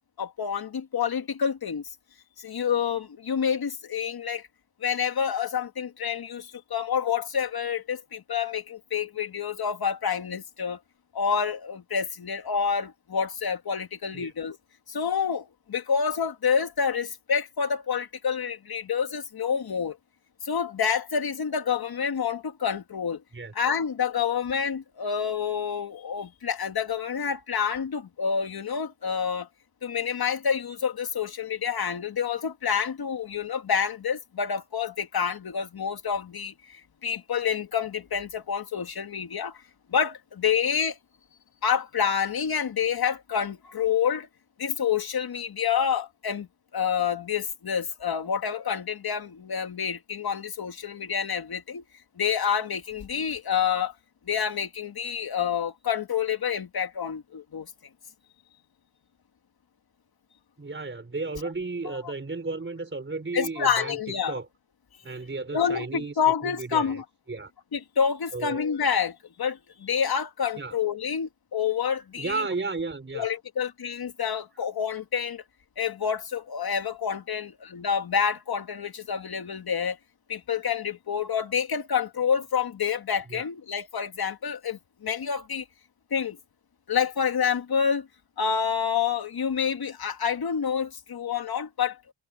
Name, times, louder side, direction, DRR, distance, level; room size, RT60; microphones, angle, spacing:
voice 1, 0.2-1.8 2.4-4.5 4.8-10.8 11.1-14.6 14.9-20.0 20.4-23.2 23.5-29.5 29.8-39.6 39.9-41.0 41.6-44.3 44.6-46.5 46.7-51.8 52.2-53.9 54.3-57.7 61.9-62.0 63.3-64.3 65.5-67.0 67.7-72.4 73.1-75.4 75.8-80.0 80.3-85.6 86.1-86.4 86.9-88.1 88.4-92.0, left 7 dB, 55° left, 2.0 m, -28 dB
voice 2, 60.6-64.0 64.3-64.5 65.0-66.1 66.4-67.0 67.3-67.5 68.3-68.6 70.6-70.8 72.2-73.3 83.3-83.5, right 3 dB, 25° right, 4.5 m, -33 dB
wide cardioid pair, 115°, 45 cm